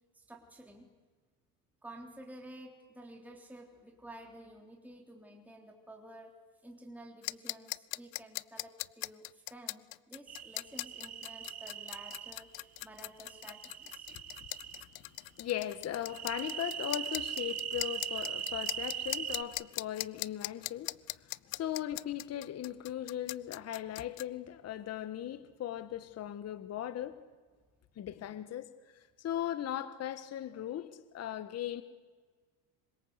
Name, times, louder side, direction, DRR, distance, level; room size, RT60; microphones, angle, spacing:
voice 1, 0.1-0.9 1.8-6.3 6.6-14.1 21.5-21.6, right 1 dB, 5° right, 1 dB, 3.4 m, -52 dB
sound 1, 7.2-24.2, left 25 dB, 65° left, 0.7 m, -40 dB
sound 2, 10.3-12.3 13.3-14.8 16.1-19.4, right 10 dB, 40° right, 2.4 m, -40 dB
voice 2, 15.4-20.9 21.2-27.1 27.9-31.8, left 11 dB, 40° left, 12 dB, 1.5 m, -38 dB
26.0 x 24.5 x 8.1 m, 1.4 s
supercardioid pair, 115°, 41 cm